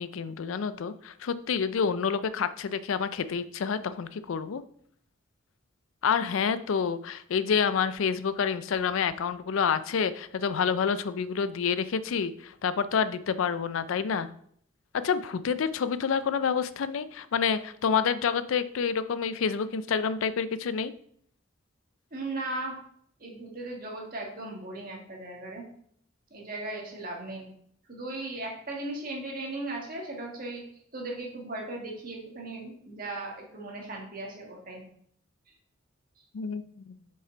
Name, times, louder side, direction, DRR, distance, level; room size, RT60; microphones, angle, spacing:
voice 1, 0.0-4.6 6.0-14.3 14.9-20.9 36.3-36.9, left 6 dB, 80° left, 14 dB, 0.4 m, -28 dB
voice 2, 22.1-22.8 23.2-25.6 26.3-27.5 27.9-30.6 30.9-34.8, right 2 dB, 45° right, -1 dB, 1.7 m, -37 dB
6.6 x 5.5 x 3.8 m, 0.65 s
head